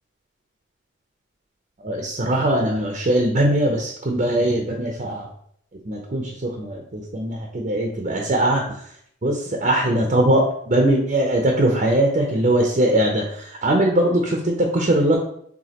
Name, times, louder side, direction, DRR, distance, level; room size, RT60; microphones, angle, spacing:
voice 1, 1.8-5.3 5.9-8.6 9.2-13.2 13.6-15.2, right 1 dB, 40° right, 2 dB, 0.6 m, -20 dB
5.0 x 3.4 x 2.9 m, 0.68 s
head